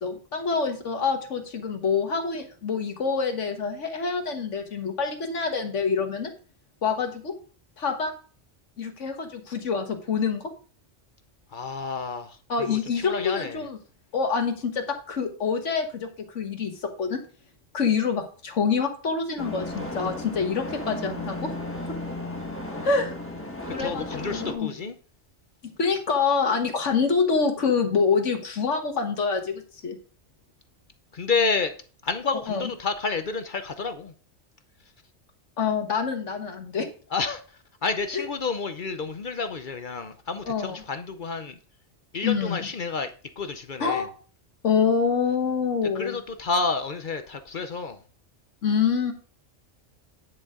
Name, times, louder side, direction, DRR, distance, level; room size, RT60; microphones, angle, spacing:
voice 1, 0.0-6.3 6.8-7.3 7.8-8.1 8.8-10.5 12.5-13.8 14.1-17.2 17.7-21.5 22.8-23.1 23.7-24.7 25.8-30.0 32.5-32.7 35.6-36.9 38.1-38.3 40.5-40.8 42.2-42.7 43.8-44.1 44.6-46.2 48.6-49.1, left 5 dB, 90° left, 1.7 m, -26 dB
voice 2, 11.5-13.7 23.7-24.9 31.1-31.7 32.0-34.1 37.1-37.4 37.8-41.6 42.1-44.1 45.9-48.0, left 4 dB, 50° left, 0.8 m, -30 dB
sound 1, 19.4-24.5, left 1 dB, 10° left, 1.4 m, -34 dB
9.9 x 6.6 x 3.7 m
omnidirectional pair, 1.2 m